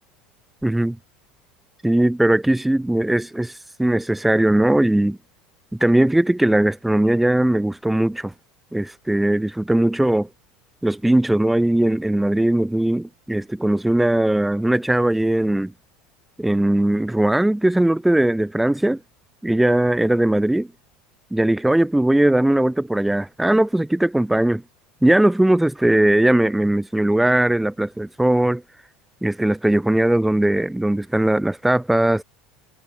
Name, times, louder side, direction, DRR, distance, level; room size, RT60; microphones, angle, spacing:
voice 1, 0.6-1.0 1.8-3.5 3.8-5.2 5.8-8.3 8.7-10.3 10.8-15.7 16.4-19.0 19.4-20.7 21.3-24.6 25.0-28.6 29.2-32.2, right 1 dB, 5° right, 0.5 m, -19 dB
hypercardioid pair, 75°, 3 cm